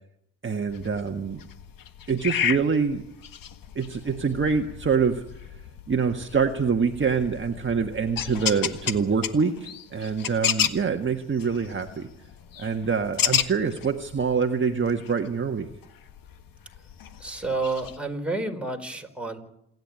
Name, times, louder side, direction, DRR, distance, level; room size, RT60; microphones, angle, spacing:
voice 1, 0.4-1.4 2.1-3.0 3.7-5.2 5.9-12.1 12.6-15.7, right 5 dB, 30° right, 4 dB, 1.6 m, -25 dB
sound 1, 0.7-18.0, left 9 dB, 60° left, 1.7 m, -33 dB
voice 2, 17.2-19.4, right 3 dB, 5° right, 2 dB, 4.6 m, -30 dB
27.5 x 11.0 x 9.7 m, 0.78 s
supercardioid pair, 65°, 38 cm